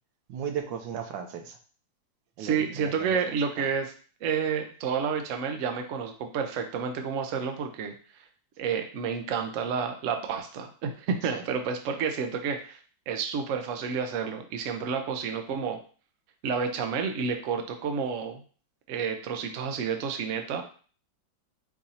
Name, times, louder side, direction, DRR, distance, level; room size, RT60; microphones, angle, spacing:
voice 1, 0.3-1.6 2.4-3.2 3.6-3.7 11.3-11.4, right 8 dB, 90° right, 6 dB, 1.4 m, -36 dB
voice 2, 2.4-3.9 4.2-7.9 8.6-12.8 13.1-15.8 16.4-18.4 18.9-20.6, right 6 dB, 65° right, 5 dB, 0.7 m, -30 dB
4.7 x 2.6 x 4.2 m, 0.41 s
omnidirectional pair, 2.1 m